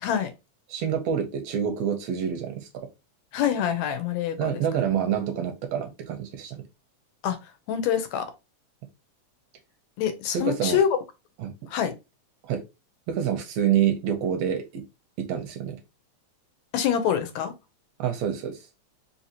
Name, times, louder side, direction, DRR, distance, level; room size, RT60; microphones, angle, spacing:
voice 1, 0.0-0.3 3.3-4.6 7.2-7.4 7.7-8.3 10.0-10.9 11.7-11.9 16.7-17.5, left 9 dB, 75° left, 1.8 m, -25 dB
voice 2, 0.7-2.7 4.4-6.6 10.3-10.8 11.4-11.5 12.4-12.6 13.1-14.8 15.2-15.8 18.0-18.6, right 9 dB, 75° right, 1.6 m, -27 dB
4.7 x 2.8 x 2.8 m
omnidirectional pair, 3.4 m